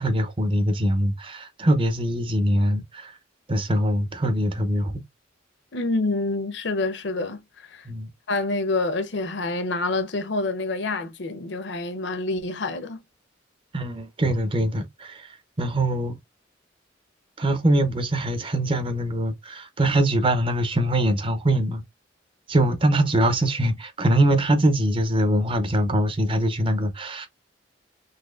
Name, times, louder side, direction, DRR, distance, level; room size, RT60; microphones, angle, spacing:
voice 1, 0.0-3.1 3.5-5.0 7.9-8.1 13.7-16.1 17.4-21.8 22.5-27.3, right 1 dB, 30° right, 0.6 m, -23 dB
voice 2, 5.7-7.9 8.3-13.0, left 2 dB, 65° left, 0.6 m, -27 dB
4.0 x 2.9 x 2.3 m
head